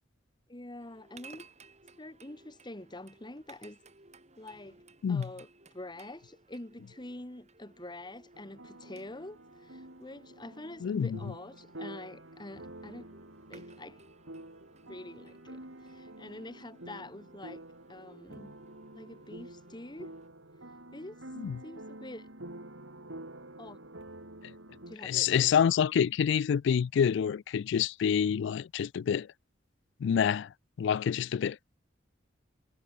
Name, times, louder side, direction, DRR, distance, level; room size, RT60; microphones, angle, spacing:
voice 1, 0.5-1.5 2.0-3.8 4.4-4.8 5.1-5.5 5.7-13.1 13.5-14.0 14.9-17.6 17.9-18.5 18.9-20.2 20.9-21.2 21.6-22.3 23.6-23.8 24.9-25.7, left 1 dB, 25° left, 1.8 m, -46 dB
sound 1, 0.8-20.3, right 3 dB, 35° right, 7.9 m, -59 dB
sound 2, 8.3-25.0, right 1 dB, 80° right, 5.3 m, -48 dB
voice 2, 10.8-11.2 21.4-21.6 25.0-29.3 30.0-30.5 30.8-31.6, left 7 dB, 65° left, 0.3 m, -27 dB
head